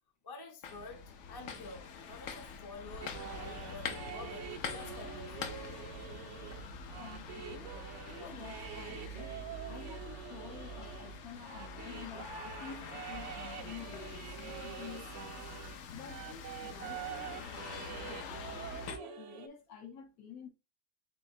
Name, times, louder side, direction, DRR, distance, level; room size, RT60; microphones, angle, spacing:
voice 1, 0.2-5.7, left 2 dB, 25° left, 0.5 m, -49 dB
sound 1, 0.6-19.0, left 4 dB, 60° left, 0.8 m, -45 dB
sound 2, 3.0-15.8 16.0-19.5, right 8 dB, 65° right, 0.8 m, -46 dB
voice 2, 6.9-9.3 9.7-15.5 15.9-20.5, left 6 dB, 80° left, 1.5 m, -50 dB
4.1 x 4.0 x 2.6 m
omnidirectional pair, 1.5 m